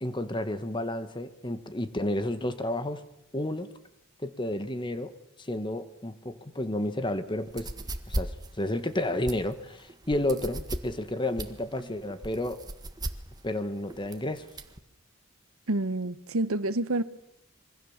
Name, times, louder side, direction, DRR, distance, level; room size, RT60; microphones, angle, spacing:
voice 1, 0.0-3.0 3.3-3.7 4.2-5.1 5.4-7.7 8.1-8.3 8.6-12.6 13.4-14.5, left 1 dB, 20° left, 1.5 m, -31 dB
sound 1, 7.4-14.8, right 1 dB, 20° right, 1.6 m, -37 dB
voice 2, 15.7-17.0, right 2 dB, 85° right, 1.1 m, -28 dB
26.0 x 24.0 x 7.3 m
head